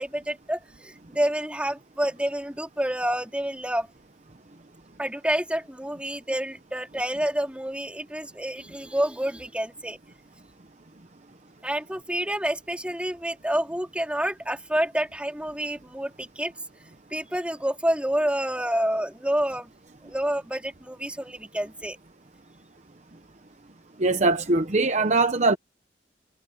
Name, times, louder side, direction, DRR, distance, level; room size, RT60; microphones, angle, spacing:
voice 1, 0.0-3.9 5.0-10.0 11.6-16.5 17.1-19.7 20.0-22.0, right 1 dB, 5° right, 3.8 m, -28 dB
voice 2, 24.0-25.6, right 3 dB, 40° right, 1.0 m, -21 dB
head